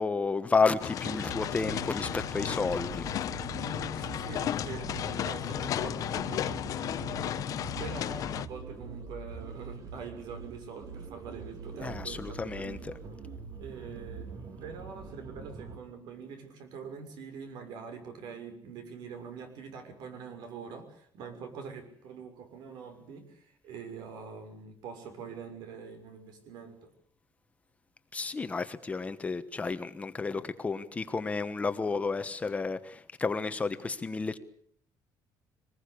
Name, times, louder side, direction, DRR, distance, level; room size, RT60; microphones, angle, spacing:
voice 1, 0.0-3.0 11.8-12.9 28.1-34.4, left 4 dB, 20° left, 11 dB, 1.2 m, -31 dB
sound 1, 0.8-8.5, left 11 dB, 50° left, 1.0 m, -34 dB
sound 2, 1.0-15.8, right 4 dB, 50° right, 3.3 m, -44 dB
voice 2, 3.5-7.5 7.8-13.0 13.6-14.3 14.6-26.9, right 5 dB, 75° right, 7 dB, 6.4 m, -44 dB
24.5 x 20.0 x 8.6 m, 0.63 s
cardioid pair, 160°, 7 cm